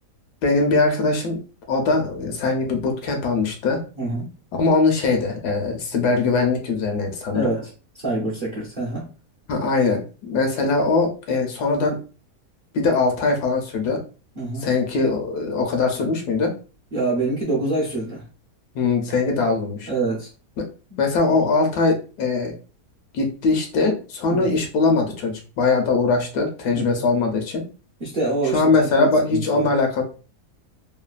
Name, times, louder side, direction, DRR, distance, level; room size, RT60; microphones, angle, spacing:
voice 1, 0.4-1.4 1.7-3.8 4.5-7.5 9.5-12.0 12.7-14.0 14.6-16.5 18.7-19.9 20.6-20.7 21.0-22.5 23.1-27.6 28.5-30.0, left 3 dB, 75° left, 3 dB, 1.2 m, -21 dB
voice 2, 4.0-4.3 7.3-7.7 8.0-9.1 14.4-14.7 16.9-18.2 19.9-20.3 24.3-24.5 26.7-27.0 28.0-29.7, right 2 dB, 50° right, -4 dB, 0.6 m, -26 dB
3.1 x 2.2 x 2.3 m, 0.34 s
omnidirectional pair, 1.8 m